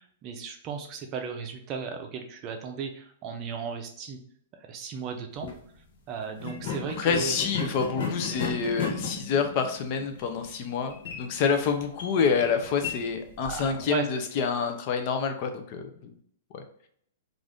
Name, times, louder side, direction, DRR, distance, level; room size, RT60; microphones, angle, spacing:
voice 1, 0.0-4.2 4.6-5.5 6.1-7.4 7.6-7.7 8.0-8.1 13.4-14.1, right 6 dB, 30° right, 4 dB, 0.5 m, -35 dB
sound 1, 5.3-5.6 6.4-13.9, left 5 dB, 65° left, 0.8 m, -36 dB
voice 2, 7.0-16.2 16.5-16.6, left 6 dB, 40° left, 6 dB, 0.5 m, -27 dB
2.5 x 2.5 x 3.4 m, 0.63 s
hypercardioid pair, 150°, 0 cm